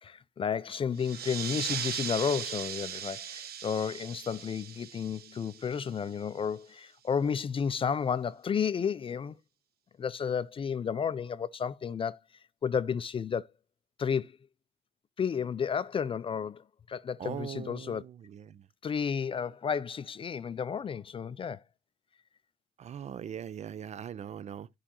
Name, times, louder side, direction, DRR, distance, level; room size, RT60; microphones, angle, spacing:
voice 1, 0.0-9.4 10.0-12.2 12.6-13.5 14.0-14.4 15.2-18.0 18.8-21.6, left 7 dB, 30° left, 0.4 m, -32 dB
sound 1, 1.0-6.2, right 9 dB, 60° right, 0.8 m, -38 dB
voice 2, 17.2-18.7 22.8-24.7, right 9 dB, 40° right, 0.4 m, -41 dB
10.0 x 4.9 x 2.9 m
cardioid pair, 90°, 18 cm